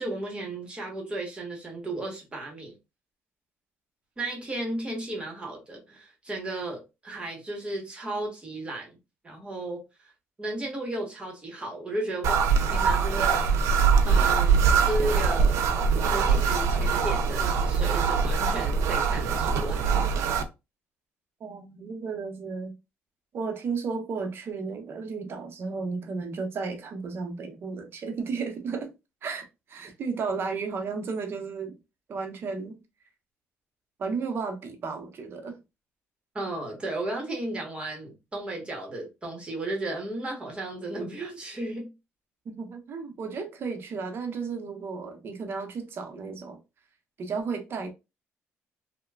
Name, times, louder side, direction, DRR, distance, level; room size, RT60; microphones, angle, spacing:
voice 1, 0.0-2.7 4.2-9.0 9.2-10.1 10.4-13.4 14.0-14.6 14.8-15.6 16.1-19.9 36.3-41.9, right 2 dB, 20° right, 1.1 m, -34 dB
sound 1, 12.2-20.4, right 5 dB, 85° right, 0.4 m, -23 dB
voice 2, 21.4-22.7 23.3-28.9 29.2-31.8 32.1-32.8 34.0-35.6 42.4-46.6 47.2-47.9, right 4 dB, 50° right, 0.7 m, -33 dB
2.9 x 2.2 x 2.3 m
cardioid pair, 110°, 5 cm